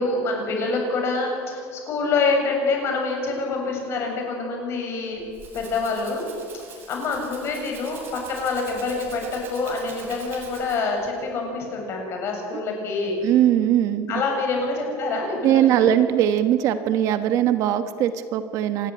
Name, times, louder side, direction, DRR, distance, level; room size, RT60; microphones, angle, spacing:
voice 1, 0.0-5.2 5.5-6.3 6.5-13.2 14.1-15.9, left 3 dB, 35° left, 2 dB, 7.5 m, -26 dB
Rattle (instrument), 5.1-11.0, right 4 dB, 30° right, 7.3 m, -44 dB
voice 2, 13.2-14.2 15.4-18.9, right 11 dB, 50° right, 10 dB, 1.3 m, -20 dB
27.0 x 21.0 x 9.3 m, 2.3 s
cardioid pair, 170°, 7 cm